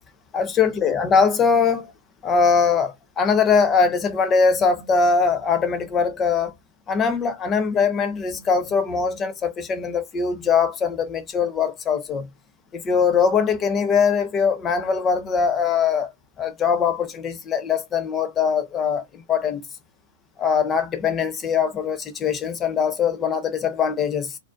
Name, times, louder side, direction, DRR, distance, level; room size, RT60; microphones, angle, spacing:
voice 1, 0.3-1.9 2.2-6.5 6.9-12.3 12.7-16.1 16.4-19.6 20.4-24.4, left 5 dB, 25° left, 0.7 m, -21 dB
2.5 x 2.1 x 2.4 m
hypercardioid pair, 105°, 0 cm